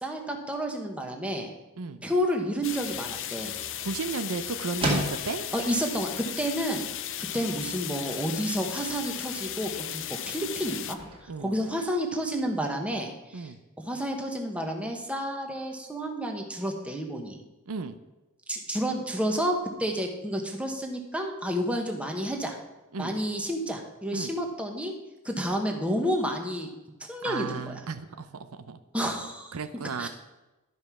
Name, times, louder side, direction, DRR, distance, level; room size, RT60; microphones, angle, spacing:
voice 1, 0.0-1.5 2.0-3.5 5.5-6.8 7.2-11.0 11.4-13.5 13.8-17.4 18.5-22.6 23.0-24.9 25.2-26.7 27.1-27.8 28.9-29.5 30.0-30.1, equal, 5° right, 2 dB, 1.2 m, -30 dB
sound 1, 2.6-10.9, left 11 dB, 60° left, 0.6 m, -36 dB
sound 2, 2.8-12.5, equal, 25° right, 2.0 m, -39 dB
voice 2, 3.8-5.5 11.3-11.5 13.3-13.6 17.7-18.0 22.9-23.1 24.1-24.3 27.2-28.8 29.5-30.1, right 4 dB, 75° right, 10 dB, 0.6 m, -34 dB
12.0 x 5.3 x 6.1 m, 1.0 s
head